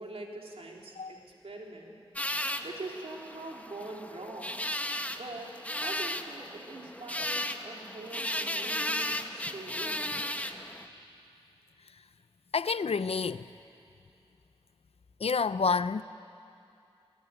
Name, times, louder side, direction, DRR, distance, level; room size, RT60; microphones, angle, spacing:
voice 1, 0.0-1.9 2.6-4.6 5.1-5.5 5.8-10.1, right 2 dB, 75° right, 3.6 m, -43 dB
sound 1, 2.2-10.9, left 1 dB, 15° left, 1.1 m, -35 dB
voice 2, 12.5-13.4 15.2-16.0, left 5 dB, 80° left, 0.6 m, -28 dB
25.5 x 18.0 x 9.7 m
wide cardioid pair, 70°, 10 cm